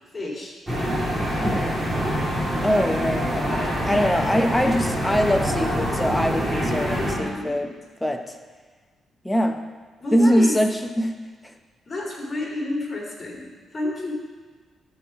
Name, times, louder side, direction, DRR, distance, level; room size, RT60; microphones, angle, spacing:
voice 1, 0.1-0.6 6.9-7.7 10.0-10.6 11.9-14.1, left 2 dB, 30° left, -3 dB, 3.4 m, -30 dB
sound 1, 0.7-7.2, equal, 10° right, 2.8 m, -25 dB
voice 2, 1.4-1.8 2.6-7.7 8.0-8.4 9.2-9.6 10.1-11.2 11.4-11.5, equal, 10° left, 6 dB, 0.9 m, -23 dB
13.0 x 4.7 x 6.0 m, 1.4 s
cardioid pair, 85°, 0 cm